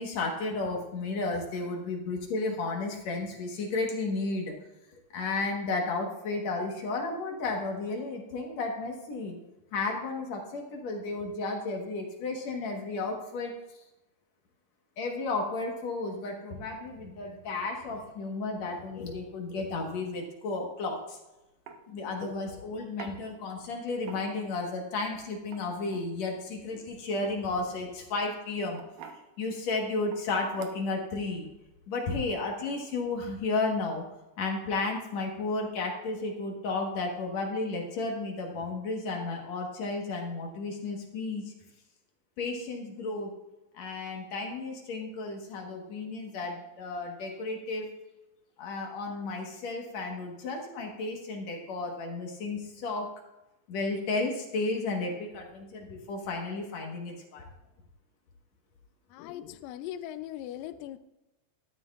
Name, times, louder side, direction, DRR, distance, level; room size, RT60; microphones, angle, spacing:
voice 1, 0.0-4.5 5.1-9.4 9.7-13.8 15.0-21.2 21.9-28.8 29.4-31.5 31.9-34.0 34.4-41.5 42.4-43.3 43.7-47.9 48.6-53.1 53.7-57.4, left 3 dB, 60° left, 1 dB, 2.0 m, -33 dB
sound 1, 21.0-21.1 21.7-21.8 23.0-23.2 24.0-24.5 25.4-26.1 27.7-28.0 28.7-29.2 30.1-30.3 30.5-31.0, right 6 dB, 70° right, 2.2 m, -45 dB
voice 2, 59.1-61.0, left 12 dB, 85° left, 11 dB, 2.0 m, -39 dB
12.5 x 12.0 x 2.4 m, 0.96 s
omnidirectional pair, 4.5 m